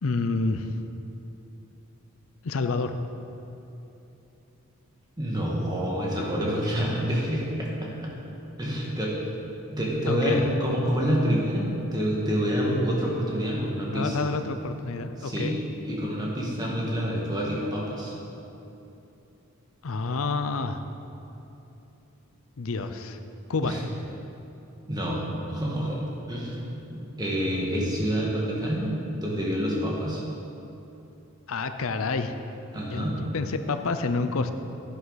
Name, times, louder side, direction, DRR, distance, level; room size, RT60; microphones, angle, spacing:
voice 1, 0.0-0.7 2.4-2.9 10.1-10.5 13.9-15.6 19.8-20.8 22.6-23.2 23.5-23.7 31.5-32.4 32.8-34.5, left 3 dB, 70° left, 9 dB, 0.6 m, -28 dB
voice 2, 5.2-8.1 8.6-9.1 9.7-14.3 15.2-15.5 15.8-18.1 23.6-23.8 24.9-26.0 26.3-26.6 26.9-30.2 32.7-33.2, equal, 20° right, -4 dB, 1.6 m, -27 dB
10.5 x 9.9 x 4.1 m, 3.0 s
head